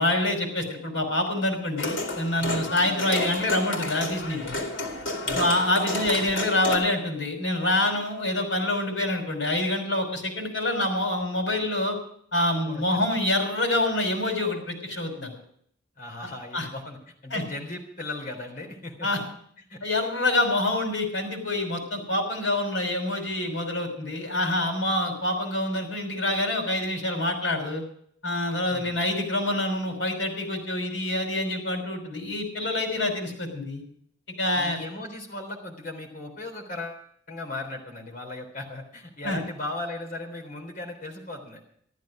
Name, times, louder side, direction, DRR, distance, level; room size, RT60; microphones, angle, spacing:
voice 1, 0.0-4.6 5.3-12.0 12.3-15.3 16.5-16.7 17.3-17.4 19.0-19.2 19.8-27.8 28.2-33.8 34.4-34.8 39.2-39.4, left 1 dB, 70° left, 3 dB, 5.5 m, -26 dB
sound 1, 1.8-6.8, left 2 dB, 85° left, 2.9 m, -31 dB
voice 2, 12.6-13.0 16.0-19.1 19.7-19.8 28.7-29.0 34.5-41.6, left 2 dB, 45° left, 1 dB, 3.7 m, -37 dB
14.0 x 12.5 x 6.3 m, 0.64 s
head